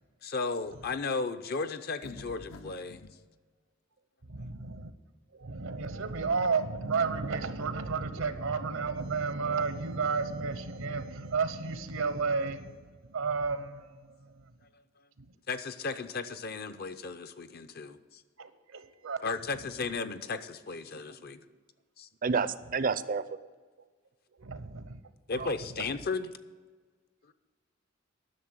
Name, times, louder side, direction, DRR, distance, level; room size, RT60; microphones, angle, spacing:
voice 1, 0.2-3.0 14.7-14.8 15.5-18.2 19.2-21.4 22.0-22.1 25.3-26.3 27.3-27.4, left 4 dB, 50° left, 11 dB, 0.6 m, -35 dB
sound 1, 2.0-3.1, left 1 dB, 80° left, 0.9 m, -47 dB
voice 2, 4.3-4.9 5.4-12.8 13.1-13.9 14.2-14.3 18.4-19.2 24.4-25.0, right 4 dB, 80° right, 11 dB, 0.9 m, -32 dB
voice 3, 22.2-23.2 25.3-25.6, right 5 dB, 45° right, 15 dB, 0.5 m, -29 dB
10.5 x 6.7 x 8.0 m, 1.4 s
head